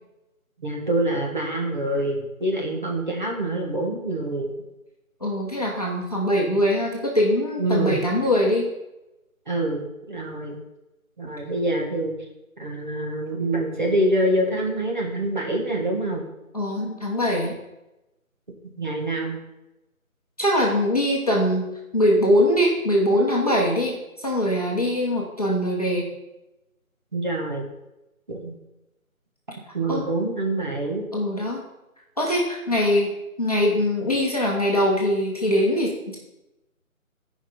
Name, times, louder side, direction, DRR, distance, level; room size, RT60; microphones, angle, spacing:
voice 1, 0.6-4.5 7.6-8.0 9.5-9.8 10.1-10.6 11.2-12.1 12.6-16.3 18.8-19.4 27.1-27.7 28.3-28.5 29.7-31.0, right 1 dB, 35° right, -1 dB, 1.4 m, -25 dB
voice 2, 5.2-8.7 16.5-17.5 20.4-21.6 21.9-26.1 29.9-30.0 31.1-31.6 32.2-33.1 33.4-36.2, equal, 25° left, -4 dB, 1.1 m, -22 dB
13.0 x 5.2 x 4.3 m, 0.95 s
figure-of-eight pair, 175°, 42 cm